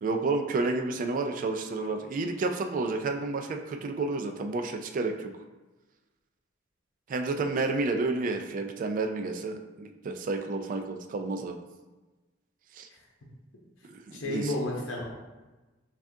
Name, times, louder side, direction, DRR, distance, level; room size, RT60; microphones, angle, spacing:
voice 1, 0.0-5.3 7.1-11.6 12.7-12.9 13.8-14.5, right 3 dB, 45° right, 5 dB, 0.3 m, -30 dB
voice 2, 14.1-15.1, left 1 dB, 85° left, -2 dB, 0.7 m, -32 dB
5.7 x 2.4 x 2.6 m, 1.2 s
head